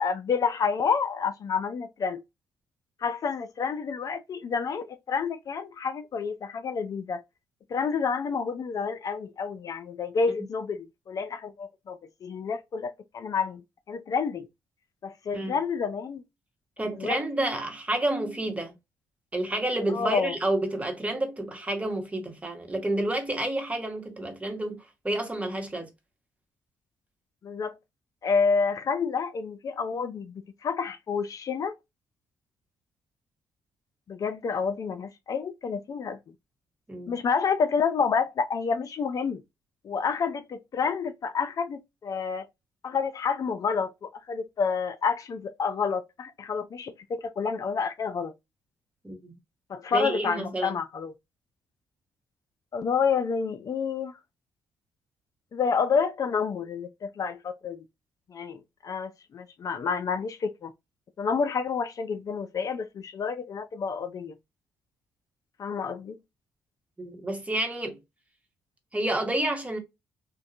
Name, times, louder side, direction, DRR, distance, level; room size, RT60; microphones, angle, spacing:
voice 1, 0.0-2.2 3.0-7.2 7.7-13.6 13.9-14.5 15.0-16.2 17.0-17.2 19.9-20.3 27.4-27.8 28.2-31.7 34.1-36.2 37.1-39.4 39.8-42.4 42.8-48.3 49.7-51.1 52.7-54.1 55.5-57.8 58.3-60.7 61.2-64.3 65.6-66.2, left 5 dB, 50° left, 0.4 m, -29 dB
voice 2, 16.8-18.7 19.3-25.9 36.9-37.1 49.0-49.3 49.9-50.8 67.0-68.0 68.9-69.8, right 1 dB, 20° right, 1.1 m, -29 dB
2.6 x 2.2 x 2.4 m
supercardioid pair, 60°, 8 cm